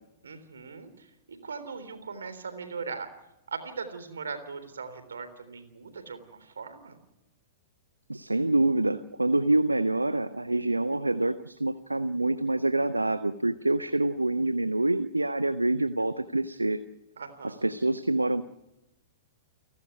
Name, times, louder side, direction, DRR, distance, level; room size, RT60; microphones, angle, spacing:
voice 1, 0.2-3.1 3.5-7.0 17.2-17.7, right 5 dB, 70° right, 10 dB, 3.6 m, -39 dB
voice 2, 8.1-16.8 17.4-18.4, right 2 dB, 90° right, 12 dB, 0.8 m, -26 dB
29.5 x 12.0 x 9.6 m, 0.94 s
figure-of-eight pair, 105°, 0 cm